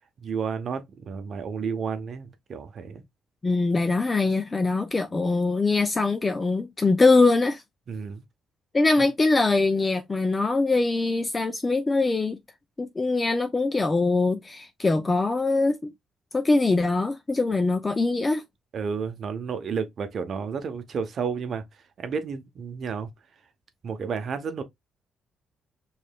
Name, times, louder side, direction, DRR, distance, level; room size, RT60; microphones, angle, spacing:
voice 1, 0.2-3.0 7.9-8.2 9.0-9.1 18.7-21.6 22.0-23.1 23.8-24.6, right 6 dB, 55° right, 0.8 m, -31 dB
voice 2, 3.4-7.6 8.7-12.4 12.8-15.9 16.3-18.4, left 3 dB, 25° left, 0.5 m, -23 dB
4.8 x 3.2 x 2.3 m
cardioid pair, 90°, 0 cm